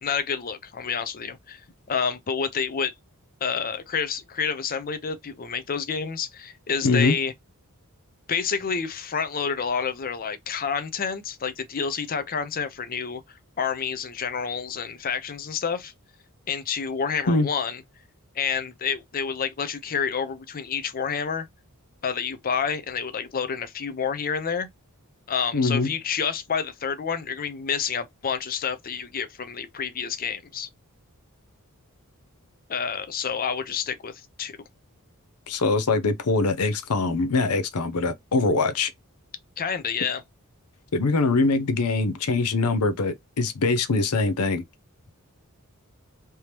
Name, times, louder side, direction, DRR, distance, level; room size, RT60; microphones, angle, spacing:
voice 1, 0.0-1.6 1.9-2.9 3.4-7.3 8.3-15.9 16.5-17.8 18.3-21.5 22.0-24.7 25.3-30.7 32.7-34.1 34.4-34.6 39.6-40.2, left 6 dB, 40° left, 0.6 m, -29 dB
voice 2, 6.8-7.2 17.3-17.5 25.5-25.9 35.5-38.9 40.9-44.6, left 3 dB, 80° left, 0.7 m, -23 dB
3.4 x 2.9 x 3.0 m
head